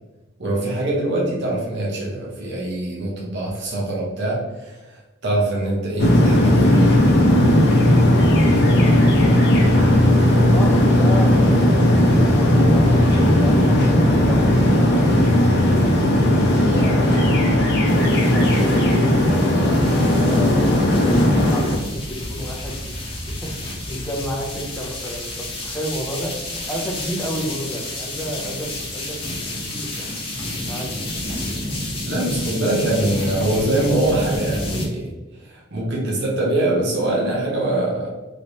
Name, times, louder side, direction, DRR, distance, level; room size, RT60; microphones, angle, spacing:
voice 1, 0.4-6.8 32.0-35.1 35.4-38.1, right 1 dB, 55° right, -3 dB, 0.8 m, -23 dB
sound 1, 6.0-21.8, left 1 dB, 55° left, 0.6 m, -16 dB
voice 2, 10.3-15.2 16.3-20.5 20.9-29.2 29.6-30.9, equal, 5° left, -2 dB, 0.6 m, -31 dB
sound 2, 17.8-34.9, left 1 dB, 25° left, 1.0 m, -30 dB
3.2 x 3.0 x 2.6 m, 1.2 s
head